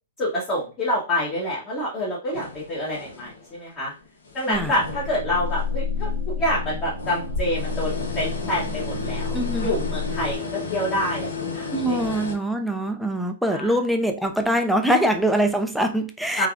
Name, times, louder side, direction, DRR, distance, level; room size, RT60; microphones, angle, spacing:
voice 1, 0.2-3.9 4.3-10.4 10.7-12.0 13.5-13.7 16.4-16.5, left 1 dB, 25° left, 0.9 m, -27 dB
sound 1, 2.3-3.6 4.0-5.6 5.9-6.0 6.8-12.3, left 4 dB, 85° left, 0.9 m, -33 dB
sound 2, 4.5-10.4, left 4 dB, 80° right, 0.3 m, -30 dB
voice 2, 9.3-9.7 11.7-16.5, right 1 dB, ahead, 0.3 m, -23 dB
3.4 x 2.3 x 2.4 m
hypercardioid pair, 140°, 0 cm